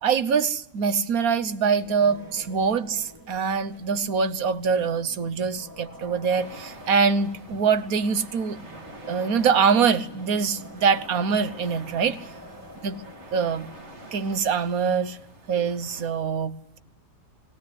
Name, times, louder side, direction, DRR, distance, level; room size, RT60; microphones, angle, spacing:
voice 1, 0.0-8.6 9.1-12.2 12.8-13.0 13.3-13.7 14.1-15.2 15.5-16.8, right 6 dB, 65° right, 1.4 m, -24 dB
sound 1, 1.8-15.0, equal, 10° right, 2.1 m, -47 dB
sound 2, 6.3-16.1, right 1 dB, 45° right, 2.6 m, -47 dB
20.0 x 17.0 x 9.8 m
omnidirectional pair, 1.7 m